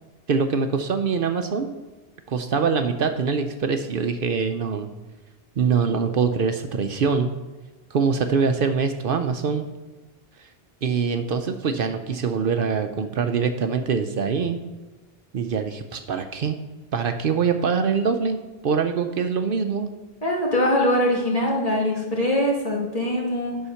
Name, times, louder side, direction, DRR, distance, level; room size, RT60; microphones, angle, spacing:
voice 1, 0.3-1.8 2.3-4.9 5.6-7.3 7.9-9.7 10.8-14.6 15.3-16.6 16.9-19.9, right 5 dB, 65° right, 7 dB, 0.8 m, -24 dB
voice 2, 20.2-23.6, left 1 dB, 35° left, -3 dB, 2.1 m, -22 dB
9.8 x 5.6 x 5.7 m, 1.2 s
omnidirectional pair, 1.0 m